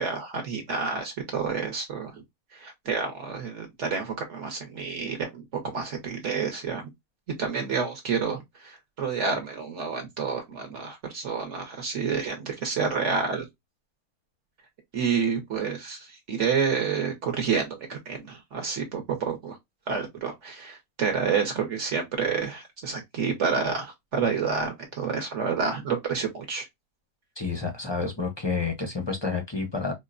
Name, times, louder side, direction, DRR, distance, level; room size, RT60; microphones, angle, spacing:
voice 1, 0.0-2.2 2.5-5.4 5.7-6.8 7.4-13.4 14.9-19.6 19.9-26.7, right 5 dB, 55° right, 1.1 m, -29 dB
voice 2, 27.4-29.9, left 4 dB, 35° left, 0.4 m, -29 dB
4.4 x 2.1 x 2.4 m
omnidirectional pair, 1.5 m